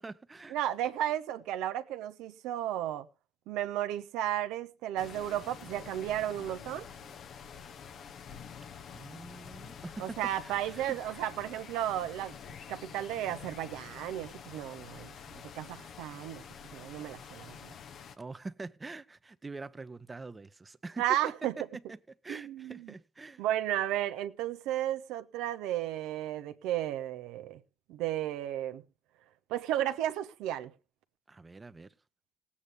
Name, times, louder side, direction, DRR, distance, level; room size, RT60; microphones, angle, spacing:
voice 1, 0.0-0.6 8.9-11.3 12.5-12.6 18.2-21.3 21.7-23.4 31.3-31.9, right 3 dB, 30° right, 1.0 m, -45 dB
voice 2, 0.5-3.1 3.5-6.9 10.0-12.4 12.7-16.4 16.7-17.6 21.0-21.6 22.3-22.9 23.4-27.6 27.9-28.8 29.5-30.7, right 12 dB, 80° right, 1.0 m, -33 dB
sound 1, 5.0-18.2, left 7 dB, 65° left, 1.2 m, -48 dB
19.0 x 8.5 x 3.6 m
hypercardioid pair, 50°, 0 cm